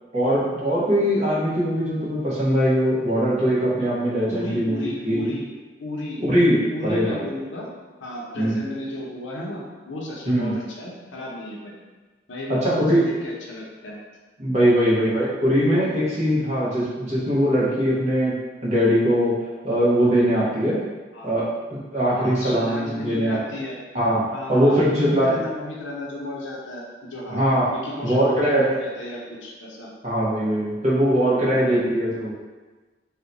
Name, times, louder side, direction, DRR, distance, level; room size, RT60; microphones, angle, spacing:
voice 1, 0.1-5.3 6.2-7.3 8.4-8.6 10.3-10.5 12.5-13.1 14.4-18.3 18.6-19.3 19.6-20.8 21.2-21.4 21.7-23.4 23.9-24.2 24.5-25.3 27.3-27.7 28.0-28.6 30.0-32.3, equal, 35° right, -7 dB, 0.9 m, -21 dB
voice 2, 4.3-5.4 5.8-6.2 6.7-7.7 8.0-11.7 12.3-14.0 21.1-21.3 22.1-23.8 24.3-29.9 31.3-31.8, left 1 dB, 85° left, -3 dB, 0.7 m, -34 dB
2.7 x 2.2 x 3.9 m, 1.3 s
head